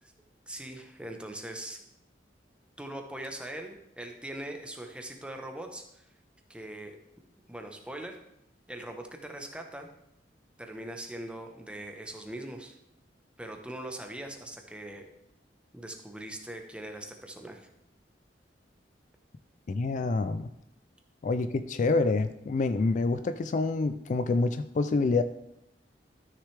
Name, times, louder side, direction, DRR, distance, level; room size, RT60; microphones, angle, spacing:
voice 1, 0.5-1.8 2.8-6.0 6.5-7.0 7.5-8.2 8.7-9.9 10.6-12.8 13.4-15.1 15.7-17.7, right 1 dB, 5° right, 4 dB, 1.0 m, -41 dB
voice 2, 19.7-20.5 21.2-25.2, left 3 dB, 45° left, 11 dB, 0.3 m, -27 dB
13.0 x 6.6 x 3.3 m, 0.79 s
head